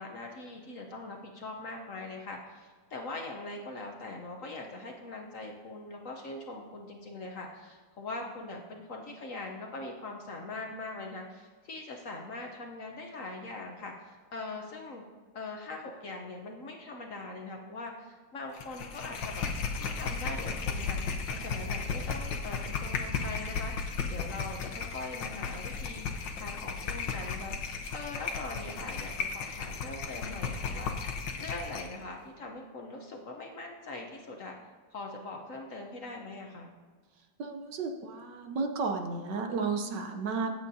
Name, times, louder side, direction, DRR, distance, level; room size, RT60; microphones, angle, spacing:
voice 1, 0.0-15.0 15.3-19.4 19.8-21.0 21.3-27.5 27.9-34.6 34.9-36.7, left 2 dB, 55° left, 2 dB, 1.0 m, -42 dB
sound 1, 18.6-31.9, left 5 dB, 75° left, 1.6 m, -35 dB
voice 2, 37.4-40.5, right 4 dB, 70° right, 5 dB, 1.4 m, -33 dB
16.0 x 8.3 x 2.7 m, 1.5 s
omnidirectional pair, 2.1 m